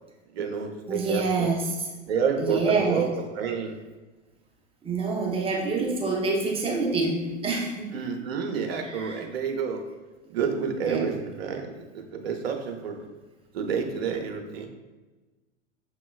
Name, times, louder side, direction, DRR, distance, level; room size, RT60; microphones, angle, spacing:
voice 1, 0.3-1.5 2.1-3.1 3.3-3.8 7.9-9.8 10.3-13.0 13.5-14.7, right 6 dB, 55° right, 3 dB, 0.8 m, -29 dB
voice 2, 0.9-1.7 2.5-3.1 4.8-8.0 8.8-9.2 10.9-11.0, right 3 dB, 15° right, -1 dB, 0.6 m, -27 dB
6.3 x 2.9 x 2.3 m, 1.2 s
figure-of-eight pair, 90°, 36 cm